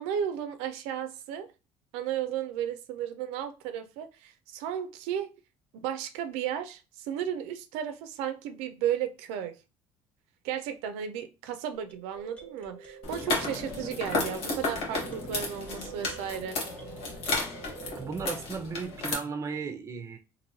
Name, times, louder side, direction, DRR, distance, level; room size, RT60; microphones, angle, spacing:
voice 1, 0.0-1.5 1.9-5.3 5.7-9.5 10.4-16.6, right 9 dB, 85° right, 0.4 m, -34 dB
sound 1, 11.7-18.5, right 6 dB, 15° left, 1.0 m, -47 dB
sound 2, 13.0-19.1, left 3 dB, 70° left, 1.1 m, -33 dB
voice 2, 18.0-20.2, right 5 dB, 30° right, 0.6 m, -35 dB
3.0 x 2.6 x 2.7 m
cardioid pair, 105°, 10 cm